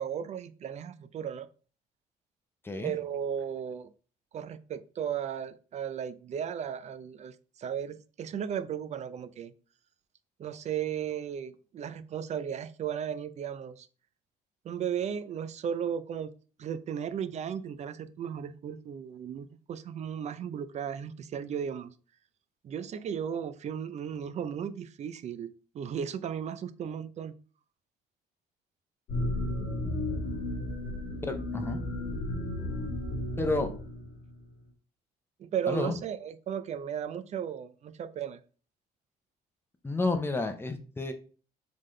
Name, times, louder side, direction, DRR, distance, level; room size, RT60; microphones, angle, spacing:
voice 1, 0.0-1.5 2.8-3.9 4.3-9.5 10.4-13.9 14.6-16.3 16.6-21.9 22.6-27.4 35.4-38.4, right 8 dB, 45° right, 13 dB, 0.4 m, -35 dB
sound 1, 29.1-34.4, left 1 dB, 65° left, 1.4 m, -34 dB
voice 2, 31.2-31.9 33.4-33.7 35.7-35.9 39.8-41.1, left 2 dB, 15° left, 6 dB, 0.6 m, -30 dB
3.8 x 3.8 x 3.1 m, 0.38 s
cardioid pair, 110°, 17 cm